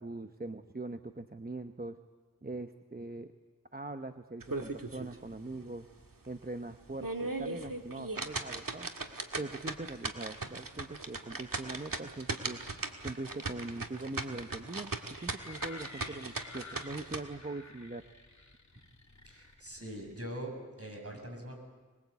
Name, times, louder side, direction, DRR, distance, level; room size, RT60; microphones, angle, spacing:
voice 1, 0.0-2.0 2.4-3.3 3.7-5.9 6.3-8.9 9.4-12.6 13.0-18.0, right 2 dB, 25° right, 7 dB, 0.9 m, -42 dB
sound 1, 4.4-5.1 5.5-5.6 6.1-6.2 6.8-17.2, right 3 dB, 80° right, 1.9 m, -38 dB
sound 2, 15.1-20.4, left 3 dB, 55° left, 2.9 m, -52 dB
voice 2, 19.3-20.5 20.8-21.6, right 1 dB, 45° right, 2 dB, 7.1 m, -42 dB
25.5 x 21.0 x 8.3 m, 1.4 s
wide cardioid pair, 45°, 33 cm